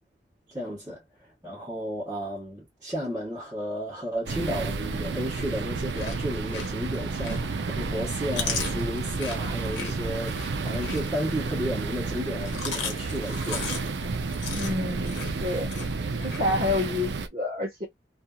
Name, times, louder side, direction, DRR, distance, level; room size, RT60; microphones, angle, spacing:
voice 1, 0.5-1.0 1.4-13.7, equal, 15° right, 1.3 m, -33 dB
sound 1, 4.3-17.3, right 3 dB, 65° right, 0.5 m, -31 dB
Chewing mastication, 5.8-7.6 8.0-11.6 12.3-16.4, left 5 dB, 65° left, 1.1 m, -36 dB
voice 2, 14.5-15.7 16.2-17.9, left 2 dB, 35° right, 0.9 m, -28 dB
2.7 x 2.6 x 2.3 m
head